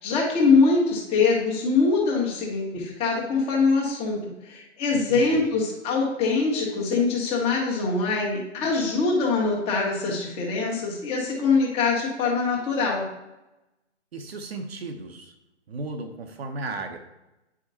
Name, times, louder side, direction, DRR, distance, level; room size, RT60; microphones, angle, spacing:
voice 1, 0.0-13.1, left 4 dB, 15° left, -3 dB, 1.4 m, -23 dB
voice 2, 4.9-5.5 14.1-15.3 15.7-17.0, right 2 dB, 55° right, 5 dB, 1.0 m, -35 dB
8.9 x 5.1 x 2.8 m, 0.95 s
hypercardioid pair, 140°, 36 cm